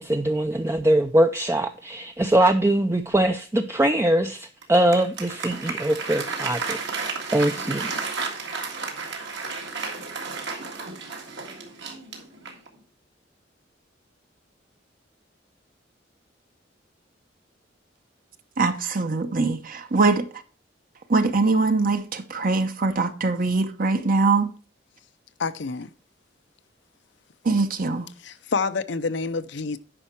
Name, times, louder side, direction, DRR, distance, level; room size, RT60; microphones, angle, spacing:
voice 1, 0.0-6.8 7.3-7.9, right 1 dB, 15° right, 0.4 m, -22 dB
Applause, 4.6-12.8, right 4 dB, 65° right, 1.9 m, -32 dB
voice 2, 18.6-20.3 21.1-24.5 27.4-28.1, right 3 dB, 50° right, 0.8 m, -22 dB
voice 3, 25.4-25.9 28.2-29.8, left 4 dB, 65° left, 0.6 m, -28 dB
9.8 x 5.5 x 4.5 m
head